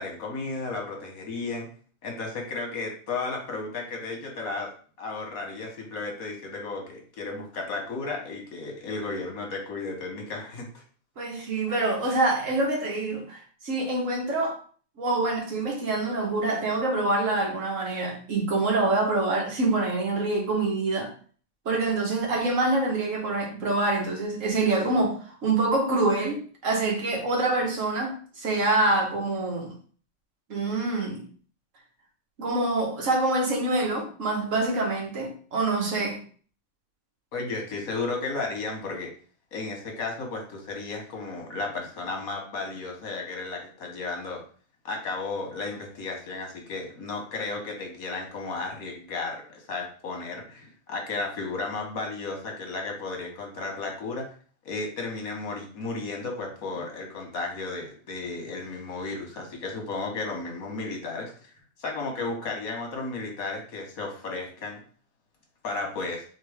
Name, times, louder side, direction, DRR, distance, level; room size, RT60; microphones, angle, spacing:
voice 1, 0.0-1.7 2.0-4.7 5.0-10.8 37.3-39.1 39.5-44.4 44.8-54.3 54.6-61.3 61.8-64.8 65.6-66.2, left 3 dB, 80° left, 1.6 m, -34 dB
voice 2, 11.2-14.6 15.0-21.1 21.6-29.7 30.5-31.2 32.4-36.2, right 2 dB, 65° right, 1.6 m, -26 dB
3.9 x 3.6 x 3.4 m
omnidirectional pair, 1.5 m